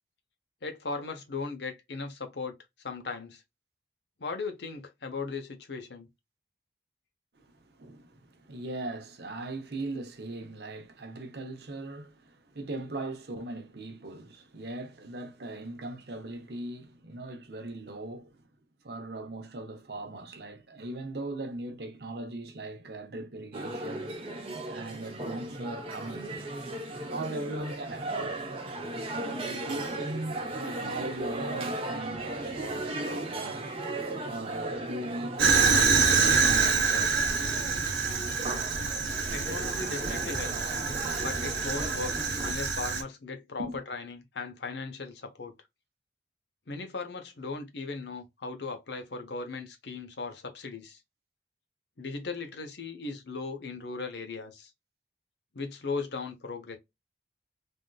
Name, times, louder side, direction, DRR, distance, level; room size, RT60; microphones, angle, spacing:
voice 1, 0.6-2.5 2.8-3.4 4.2-6.1 39.3-40.8 41.2-42.1 42.4-45.5 46.7-51.0 52.0-54.7 55.5-56.8, left 4 dB, 75° left, 0.8 m, -37 dB
voice 2, 7.8-18.4 18.8-24.1 24.7-26.4 27.0-28.8 29.4-33.7 34.2-35.4 35.7-37.5 43.6-43.8, right 2 dB, 60° right, 0.8 m, -39 dB
sound 1, 23.5-42.5, right 2 dB, 30° right, 0.8 m, -37 dB
Fire, 35.4-43.0, right 5 dB, 80° right, 1.1 m, -26 dB
3.5 x 2.5 x 2.2 m
head